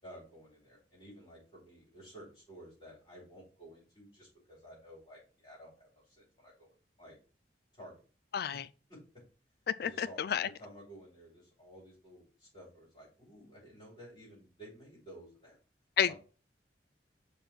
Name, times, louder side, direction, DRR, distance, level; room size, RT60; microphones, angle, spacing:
voice 1, 0.0-6.7 7.0-7.2 7.7-7.9 8.9-9.0 9.8-15.6 16.1-16.2, equal, 30° left, 3.7 m, -53 dB
voice 2, 8.3-8.6 9.8-10.5 16.0-16.1, left 8 dB, 60° left, 0.4 m, -30 dB
5.5 x 3.7 x 6.0 m
head